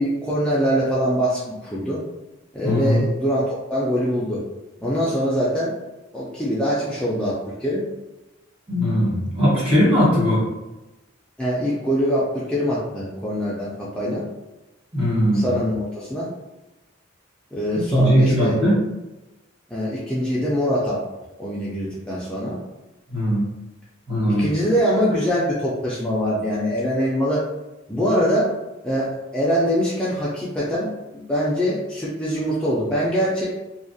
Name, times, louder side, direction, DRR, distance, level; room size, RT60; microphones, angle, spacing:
voice 1, 0.0-2.0 2.5-3.4 3.7-4.4 4.8-5.7 6.1-7.3 7.6-7.8 11.4-14.3 15.3-16.3 17.5-18.5 19.7-21.0 21.4-22.6 24.4-27.4 27.9-28.5 28.8-29.1 29.3-33.5, equal, 5° left, -8 dB, 0.3 m, -23 dB
voice 2, 2.6-3.1 8.7-10.4 14.9-15.6 17.7-18.8 23.1-23.5 24.1-24.4, equal, 30° right, -7 dB, 1.1 m, -19 dB
2.3 x 2.1 x 2.6 m, 1.0 s
head